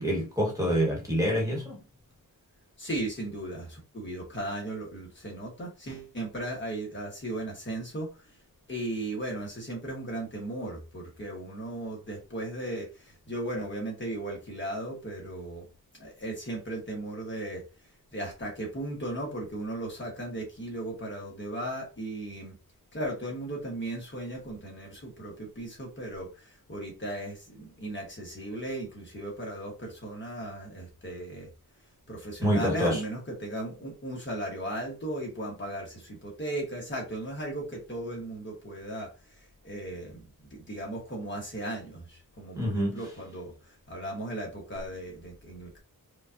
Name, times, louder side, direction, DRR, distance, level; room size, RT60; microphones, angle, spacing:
voice 1, 0.0-1.8 32.4-33.0 42.5-43.0, equal, 10° right, 1.3 m, -26 dB
voice 2, 2.8-8.1 8.7-15.6 16.0-17.6 18.1-22.5 22.9-31.5 32.1-40.2 40.5-45.8, right 1 dB, 30° left, 1.2 m, -36 dB
5.0 x 2.4 x 2.6 m
wide cardioid pair, 175°, 37 cm